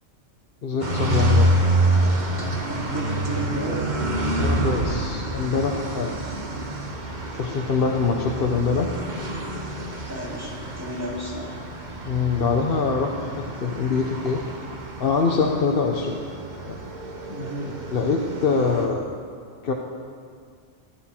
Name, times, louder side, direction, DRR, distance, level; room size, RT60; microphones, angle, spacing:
voice 1, 0.6-1.5 4.4-6.1 7.3-8.9 12.0-14.4 15.0-16.2 16.6-16.8 17.9-19.1 19.6-19.7, left 5 dB, 50° left, 1 dB, 1.0 m, -24 dB
sound 1, 0.8-18.9, right 1 dB, 40° right, 1.4 m, -27 dB
voice 2, 2.7-3.9 9.9-11.6 17.3-17.8, right 1 dB, 10° right, -6 dB, 3.2 m, -33 dB
16.0 x 12.5 x 4.4 m, 2.1 s
omnidirectional pair, 1.3 m